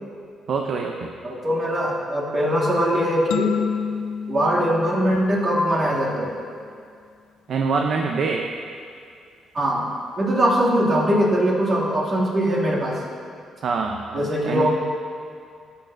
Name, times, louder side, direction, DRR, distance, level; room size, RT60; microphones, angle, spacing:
voice 1, 0.5-1.1 7.5-8.5 13.6-14.7, right 4 dB, 60° right, 2 dB, 0.5 m, -25 dB
voice 2, 1.2-3.5 4.3-6.3 9.5-9.9 10.2-13.0 14.1-14.7, equal, 45° right, -6 dB, 2.2 m, -21 dB
sound 1, 3.3-6.0, left 7 dB, 85° left, 0.4 m, -29 dB
13.0 x 6.9 x 2.6 m, 2.3 s
cardioid pair, 90°, 0 cm